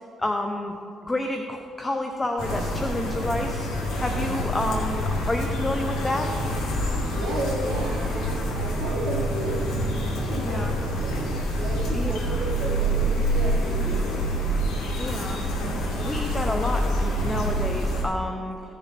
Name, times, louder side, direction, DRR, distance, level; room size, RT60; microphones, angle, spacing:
voice 1, 0.2-0.8 1.0-6.3 10.3-10.7 11.9-12.4 15.0-15.4 16.0-18.6, left 1 dB, 20° left, 4 dB, 0.8 m, -29 dB
sound 1, 2.4-18.0, equal, 85° left, 2.4 m, -26 dB
voice 2, 7.1-9.6 10.3-11.3 11.5-14.3, right 1 dB, 85° right, -6 dB, 1.9 m, -33 dB
15.5 x 6.7 x 4.2 m, 2.4 s
cardioid pair, 90°, 0 cm